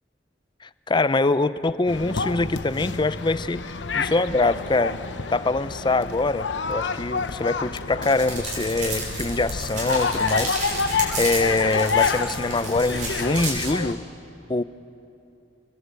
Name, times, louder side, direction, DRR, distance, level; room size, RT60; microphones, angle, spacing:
voice 1, 0.9-5.0 5.3-10.6 10.9-14.0 14.5-14.6, left 3 dB, 25° left, 14 dB, 0.6 m, -24 dB
sound 1, 1.9-14.0, left 4 dB, 85° left, 0.9 m, -28 dB
sound 2, 8.0-13.7, right 2 dB, 45° right, 6.3 m, -32 dB
25.0 x 21.0 x 8.2 m, 2.7 s
head